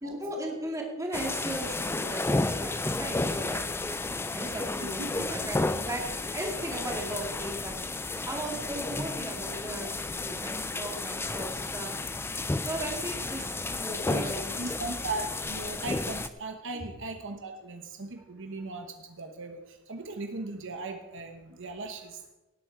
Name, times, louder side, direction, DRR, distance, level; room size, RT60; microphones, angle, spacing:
voice 1, 0.0-5.6 5.8-7.7 8.2-12.0 12.6-14.6, right 1 dB, 15° right, 0 dB, 2.3 m, -37 dB
sound 1, 1.1-16.3, left 2 dB, 10° left, 0.4 m, -32 dB
voice 2, 4.8-5.3 14.1-22.2, right 2 dB, 60° right, 5 dB, 1.1 m, -38 dB
18.0 x 8.5 x 4.6 m, 1.1 s
head